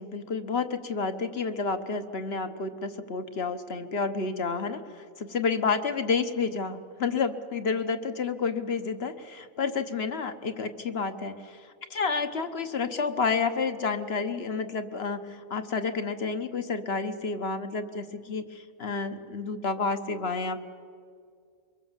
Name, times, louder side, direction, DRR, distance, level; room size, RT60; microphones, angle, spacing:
voice 1, 0.0-20.6, left 5 dB, 50° left, 9 dB, 1.3 m, -30 dB
24.0 x 23.0 x 7.3 m, 2.2 s
omnidirectional pair, 1.4 m